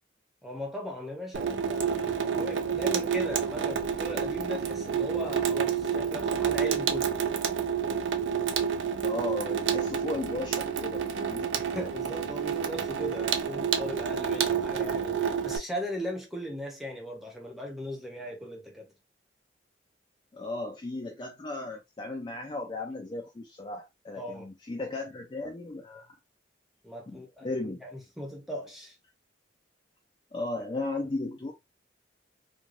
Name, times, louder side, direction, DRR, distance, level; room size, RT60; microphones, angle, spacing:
voice 1, 0.4-7.2 11.6-18.9 24.1-24.5 26.8-27.5 27.8-29.0, left 1 dB, ahead, 0.7 m, -38 dB
Water tap faucet / Sink (filling or washing), 1.3-15.6, right 7 dB, 80° right, 0.4 m, -29 dB
voice 2, 9.0-11.5 20.3-26.1 27.1-27.8 30.3-31.5, left 2 dB, 25° left, 0.3 m, -35 dB
3.2 x 2.2 x 2.4 m
head